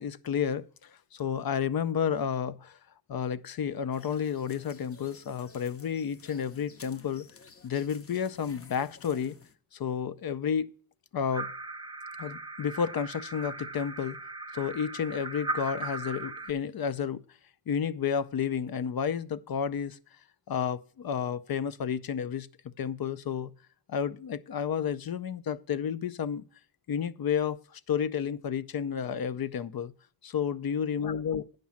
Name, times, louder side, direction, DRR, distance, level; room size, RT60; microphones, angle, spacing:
voice 1, 0.0-2.8 3.1-7.3 7.6-9.3 9.7-10.7 11.1-11.5 12.2-14.2 14.5-17.2 17.7-20.0 20.5-22.5 22.8-23.5 23.9-26.4 26.9-29.9 30.2-31.4, left 7 dB, 75° left, 0.6 m, -31 dB
sound 1, 3.9-9.5, left 5 dB, 40° left, 0.7 m, -53 dB
sound 2, 11.3-16.5, right 2 dB, 15° right, 0.8 m, -38 dB
10.5 x 5.3 x 7.1 m
wide cardioid pair, 145°, 36 cm